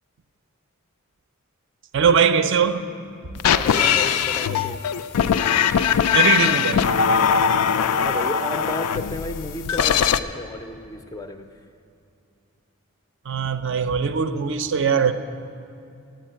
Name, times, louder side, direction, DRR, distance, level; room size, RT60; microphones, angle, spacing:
voice 1, 1.9-2.9 6.1-6.8 13.3-15.1, right 6 dB, 55° right, 0.5 m, -20 dB
sound 1, 3.4-10.2, left 7 dB, 90° left, 0.4 m, -20 dB
voice 2, 3.5-4.8 7.7-11.5, left 2 dB, 15° left, 0.4 m, -33 dB
8.9 x 8.2 x 8.8 m
head